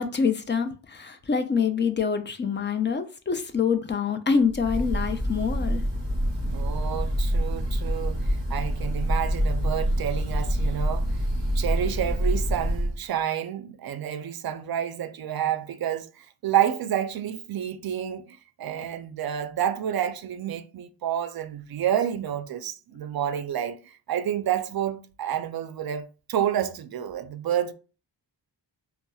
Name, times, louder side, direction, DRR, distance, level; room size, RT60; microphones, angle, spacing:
voice 1, 0.0-5.8, left 6 dB, 25° left, 0.4 m, -26 dB
Breathing / Bird, 4.5-13.0, equal, 10° right, 1.2 m, -26 dB
voice 2, 6.5-11.1 11.5-27.7, right 10 dB, 55° right, 0.5 m, -29 dB
4.0 x 2.0 x 2.3 m
cardioid pair, 75°, 47 cm